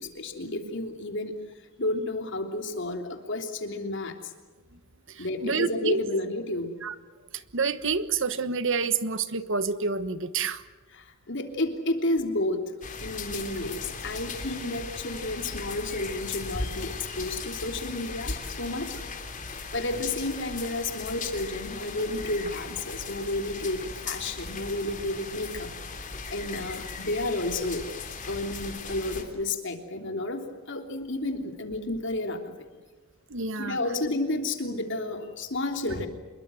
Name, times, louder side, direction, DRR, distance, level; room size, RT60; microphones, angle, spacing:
voice 1, 0.0-1.4 1.8-4.3 5.2-6.7 10.9-12.7 13.0-19.0 19.7-25.7 26.3-27.9 28.3-32.5 33.6-36.1, left 2 dB, 60° left, 5 dB, 3.3 m, -31 dB
voice 2, 5.1-6.0 6.8-6.9 7.3-10.6 33.3-33.8, right 5 dB, 65° right, 12 dB, 1.3 m, -28 dB
sound 1, 12.8-29.2, left 4 dB, 40° left, 3.4 m, -38 dB
27.0 x 22.5 x 7.9 m, 1.3 s
head